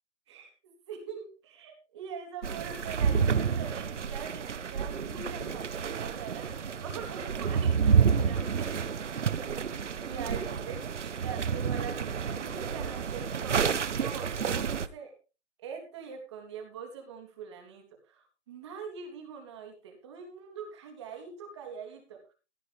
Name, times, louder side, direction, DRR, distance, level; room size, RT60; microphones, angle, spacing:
voice 1, 0.3-8.8 9.9-13.6 13.9-15.1 15.6-22.2, right 6 dB, 25° right, 4 dB, 3.3 m, -43 dB
sound 1, 2.4-14.9, right 6 dB, 85° right, 1.3 m, -29 dB
15.5 x 11.5 x 3.5 m, 0.32 s
hypercardioid pair, 175°, 35 cm